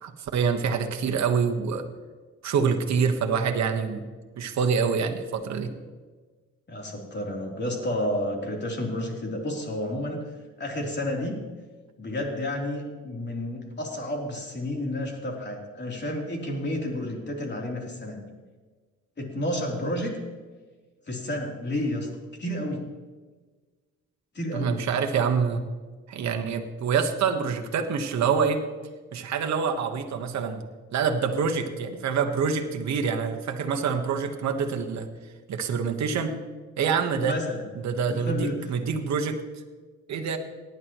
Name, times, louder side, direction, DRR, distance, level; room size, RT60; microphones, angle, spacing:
voice 1, 0.0-1.8 2.4-4.1 4.4-5.7 24.5-25.6 26.1-28.6 29.1-30.6 30.9-35.1 35.5-36.3 36.8-37.4 37.8-39.4 40.1-40.4, right 6 dB, 65° right, 4 dB, 1.4 m, -26 dB
voice 2, 6.7-10.2 10.6-11.4 12.0-18.2 19.2-20.2 21.1-22.1 22.4-22.9 24.3-24.8 37.2-37.6 38.1-38.7, left 1 dB, 35° left, 0 dB, 3.4 m, -30 dB
18.0 x 10.5 x 3.1 m, 1.4 s
cardioid pair, 90°, 30 cm